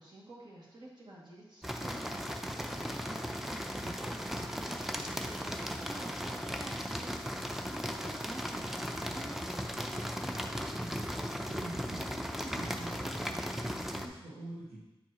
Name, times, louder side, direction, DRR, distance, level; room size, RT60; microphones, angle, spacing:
voice 1, 0.0-3.6 4.1-9.4, right 1 dB, 45° right, -6 dB, 2.3 m, -49 dB
sound 1, 1.6-14.1, equal, 5° right, 0.6 m, -37 dB
voice 2, 9.6-11.0 11.4-14.9, right 1 dB, 90° right, -6 dB, 1.3 m, -46 dB
8.9 x 4.6 x 3.0 m, 1.0 s
cardioid pair, 60°, 10 cm